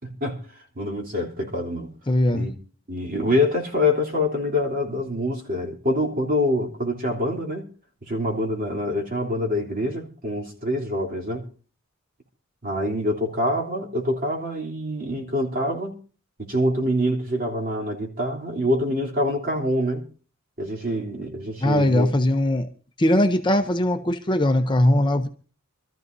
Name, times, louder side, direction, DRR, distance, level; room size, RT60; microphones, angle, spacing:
voice 1, 0.0-0.4 0.7-1.9 2.3-2.5 2.9-7.6 8.0-11.4 12.6-16.0 16.4-20.0 20.6-22.1, left 1 dB, 45° right, 3.3 m, -25 dB
voice 2, 2.1-2.5 21.6-22.7 23.0-25.3, left 1 dB, 20° left, 0.7 m, -20 dB
26.0 x 13.5 x 2.7 m
head